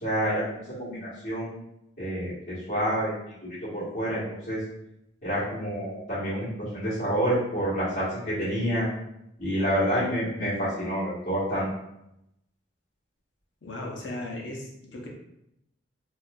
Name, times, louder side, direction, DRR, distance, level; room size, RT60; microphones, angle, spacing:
voice 1, 0.0-1.5 2.0-3.1 3.4-4.6 5.2-8.9 9.4-11.7, equal, 40° left, -11 dB, 1.4 m, -28 dB
voice 2, 13.6-15.1, left 1 dB, 65° left, -1 dB, 0.8 m, -36 dB
4.1 x 2.5 x 2.4 m, 0.82 s
head